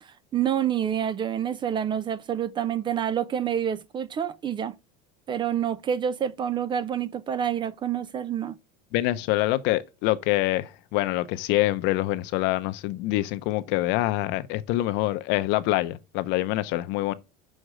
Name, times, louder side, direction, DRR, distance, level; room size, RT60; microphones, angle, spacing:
voice 1, 0.0-4.7 5.3-8.6, right 9 dB, 25° right, 0.3 m, -28 dB
voice 2, 8.9-17.1, left 17 dB, 60° left, 0.7 m, -25 dB
6.4 x 4.3 x 5.0 m
cardioid pair, 145°, 20 cm